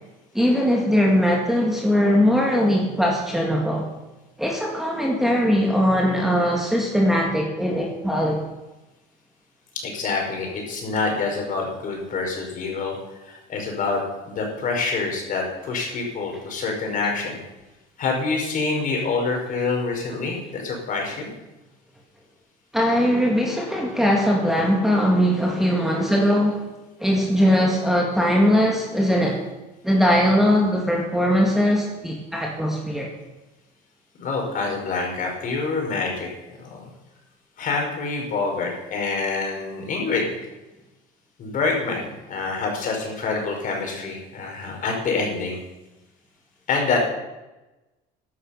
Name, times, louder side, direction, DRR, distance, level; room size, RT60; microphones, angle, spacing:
voice 1, 0.3-3.9 4.4-8.4 22.7-26.6 27.0-29.4 29.8-33.1, equal, ahead, -2 dB, 2.0 m, -20 dB
voice 2, 9.7-17.4 18.0-21.3 34.2-36.3 36.6-36.9 37.6-40.3 41.4-45.6 46.7-47.1, left 4 dB, 40° left, 1 dB, 4.7 m, -26 dB
14.5 x 11.0 x 5.7 m, 1.0 s
cardioid pair, 135°, 20 cm